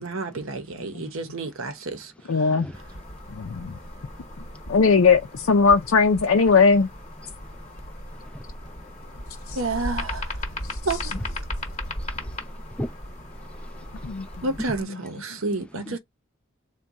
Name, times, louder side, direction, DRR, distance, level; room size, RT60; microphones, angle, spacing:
voice 1, 0.0-2.1 2.4-2.5 9.5-10.4 10.8-11.1 14.4-16.0, right 3 dB, 75° right, 0.8 m, -30 dB
voice 2, 2.3-2.7 3.3-3.8 4.7-6.9 9.5-9.6 14.0-14.3 15.5-15.6, left 5 dB, 80° left, 0.5 m, -19 dB
sound 1, 2.7-14.8, left 1 dB, 35° left, 1.0 m, -36 dB
voice 3, 11.9-13.0 13.4-14.3, equal, 5° left, 0.4 m, -39 dB
4.0 x 2.2 x 3.5 m
head